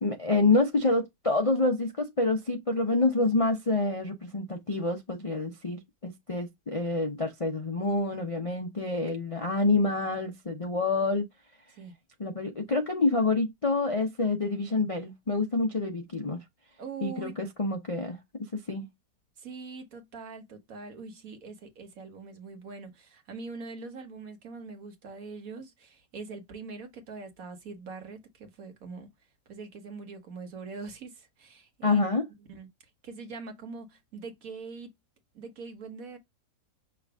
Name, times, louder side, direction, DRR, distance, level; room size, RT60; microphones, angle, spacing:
voice 1, 0.0-11.3 12.2-16.4 17.0-18.2 18.5-18.9 31.8-32.3, left 3 dB, 40° left, 0.4 m, -27 dB
voice 2, 16.8-17.3 19.4-29.1 29.5-32.0 32.5-32.7 33.0-34.9 35.3-36.2, right 4 dB, 60° right, 1.5 m, -42 dB
5.9 x 2.5 x 3.4 m
omnidirectional pair, 1.8 m